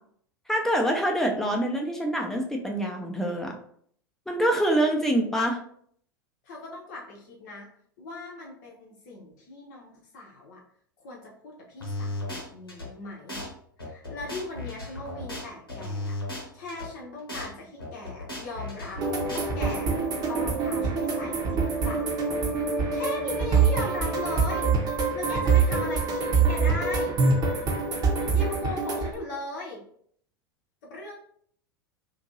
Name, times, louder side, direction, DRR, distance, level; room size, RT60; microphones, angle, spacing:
voice 1, 0.5-3.5 4.3-5.6, right 1 dB, 5° left, 1 dB, 0.6 m, -25 dB
voice 2, 6.4-7.7 8.0-10.6 11.0-13.5 13.8-16.2 16.5-19.0 19.3-19.9 20.3-22.2 22.9-24.8 25.1-27.2 28.3-29.8 30.9-31.2, left 2 dB, 55° left, -2 dB, 0.7 m, -38 dB
sound 1, 11.8-12.9 13.3-13.5 13.8-16.9 17.3-17.5 17.8-19.8, left 2 dB, 85° left, 0.9 m, -35 dB
sound 2, 19.0-29.1, right 4 dB, 35° right, 0.8 m, -25 dB
2.9 x 2.6 x 2.6 m, 0.63 s
figure-of-eight pair, 85°, 12 cm